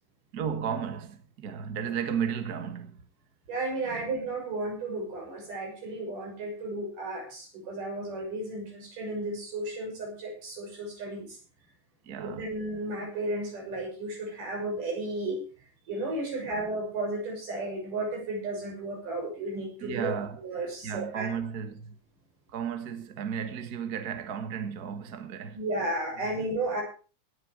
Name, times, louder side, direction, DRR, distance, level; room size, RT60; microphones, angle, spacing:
voice 1, 0.3-3.0 3.9-4.1 12.0-12.5 16.4-16.5 19.8-20.4 20.8-22.0 22.5-25.6, right 7 dB, 45° right, 1.2 m, -34 dB
voice 2, 3.5-11.4 12.2-15.4 15.9-20.1 20.4-21.3 25.5-26.8, right 2 dB, 65° right, 7.8 m, -33 dB
17.5 x 10.0 x 5.0 m
omnidirectional pair, 3.9 m